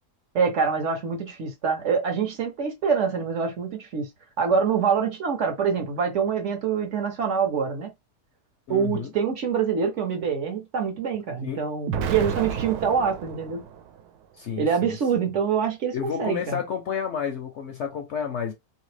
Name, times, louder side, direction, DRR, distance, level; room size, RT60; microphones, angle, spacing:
voice 1, 0.3-4.1 4.4-7.9 8.7-13.6 14.6-16.6, right 6 dB, 60° right, 0.9 m, -25 dB
voice 2, 8.7-9.1 11.4-11.6 14.4-15.0 15.9-18.5, left 7 dB, 65° left, 0.7 m, -30 dB
Explosion, 11.9-14.0, right 7 dB, 85° right, 1.1 m, -31 dB
2.8 x 2.8 x 3.2 m
omnidirectional pair, 1.6 m